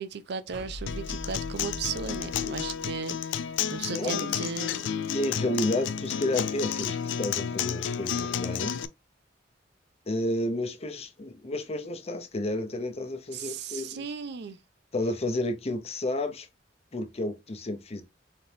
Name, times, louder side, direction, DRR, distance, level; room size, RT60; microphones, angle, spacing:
voice 1, 0.0-4.9 13.3-14.6, right 6 dB, 65° right, 0.5 m, -36 dB
sound 1, 0.5-3.8, left 1 dB, 85° right, 1.8 m, -41 dB
Acoustic guitar, 0.9-8.8, left 8 dB, 70° left, 0.3 m, -31 dB
voice 2, 3.9-4.4 5.1-8.7 10.1-14.1 14.9-16.5 16.9-18.0, left 1 dB, 35° left, 0.7 m, -31 dB
4.0 x 3.4 x 2.7 m
head